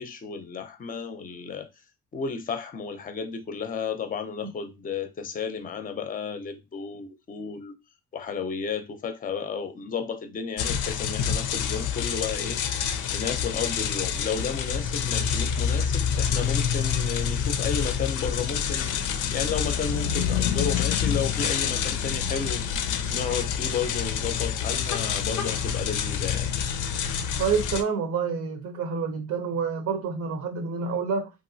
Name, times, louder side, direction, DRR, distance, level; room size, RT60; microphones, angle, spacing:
voice 1, 0.0-1.7 2.1-7.7 8.1-12.6 13.1-19.0 19.3-22.6 23.1-26.5, left 6 dB, 30° left, 0.5 m, -33 dB
sound 1, 10.6-27.8, left 7 dB, 90° left, 0.5 m, -27 dB
voice 2, 27.4-31.3, right 5 dB, 65° right, 0.7 m, -28 dB
2.9 x 2.5 x 2.7 m
cardioid pair, 90°, 30 cm